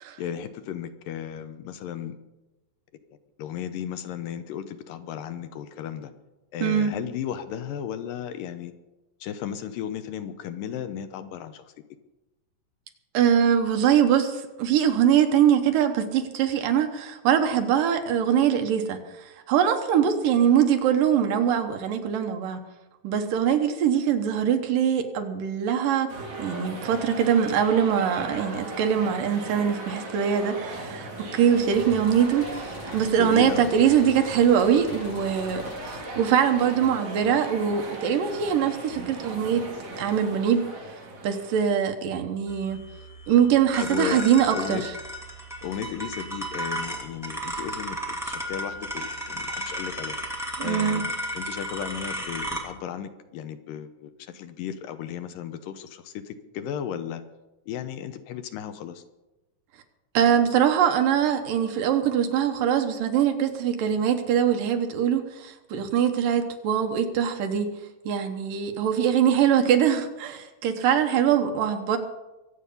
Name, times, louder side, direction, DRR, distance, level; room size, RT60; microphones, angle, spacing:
voice 1, 0.2-2.2 3.4-6.1 6.5-8.7 9.2-11.6 33.2-33.7 43.8-44.3 44.5-44.8 45.6-48.0 48.2-50.2 50.6-57.2 57.7-59.0, left 9 dB, 85° left, 9 dB, 2.6 m, -34 dB
voice 2, 6.6-7.0 13.1-22.6 23.0-26.1 26.4-39.7 40.0-40.6 41.2-42.8 43.3-44.9 50.6-51.0 60.1-67.7 68.1-72.0, right 8 dB, 75° right, 6 dB, 2.8 m, -23 dB
sound 1, 26.1-41.7, right 2 dB, 55° right, 3.9 m, -38 dB
sound 2, 31.5-37.4, left 2 dB, 40° left, 3.0 m, -45 dB
sound 3, 42.5-52.6, right 1 dB, ahead, 1.7 m, -34 dB
23.0 x 8.5 x 5.5 m, 1.0 s
omnidirectional pair, 4.0 m